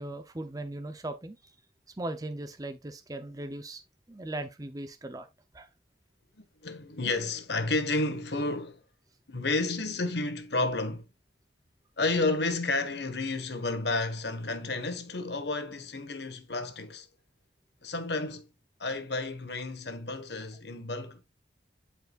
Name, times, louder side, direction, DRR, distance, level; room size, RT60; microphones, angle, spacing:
voice 1, 0.0-1.4 2.0-3.8 4.1-5.3 5.5-5.7, right 1 dB, 20° right, 0.7 m, -38 dB
voice 2, 6.4-8.8 9.3-11.0 12.0-17.1 17.8-18.5 18.8-21.2, left 2 dB, 70° left, 1.5 m, -31 dB
11.5 x 4.8 x 2.4 m
head